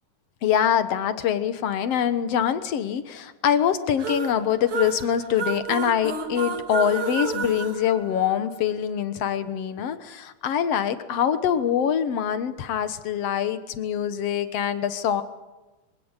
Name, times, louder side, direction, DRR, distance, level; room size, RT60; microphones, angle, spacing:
voice 1, 0.4-15.2, left 9 dB, 60° left, 11 dB, 2.1 m, -24 dB
sound 1, 4.0-8.7, right 5 dB, 50° right, 2.5 m, -31 dB
25.0 x 17.5 x 9.7 m, 1.1 s
omnidirectional pair, 3.5 m